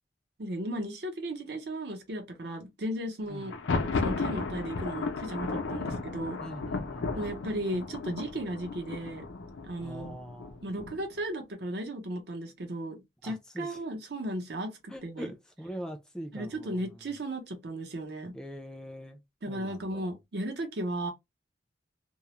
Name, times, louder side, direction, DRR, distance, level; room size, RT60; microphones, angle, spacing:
voice 1, 0.4-3.5 4.0-6.4 7.1-9.3 9.6-10.2 10.6-15.3 16.3-18.3 19.4-21.1, right 1 dB, 60° right, 0.7 m, -35 dB
Thunder, 3.4-11.2, left 4 dB, 85° left, 0.5 m, -34 dB
voice 2, 6.4-7.3 9.8-10.6 13.2-13.8 14.9-16.9 18.3-19.2 19.5-20.1, equal, 5° left, 0.3 m, -43 dB
2.3 x 2.0 x 2.9 m
head